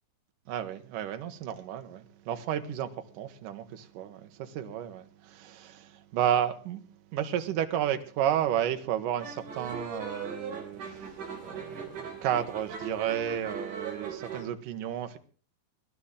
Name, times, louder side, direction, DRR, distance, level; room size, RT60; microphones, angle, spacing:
voice 1, 0.5-6.8 7.1-15.2, right 10 dB, 70° right, 2.1 m, -32 dB
sound 1, 9.2-14.4, right 5 dB, 45° right, 5.1 m, -39 dB
20.0 x 11.5 x 3.7 m
omnidirectional pair, 5.2 m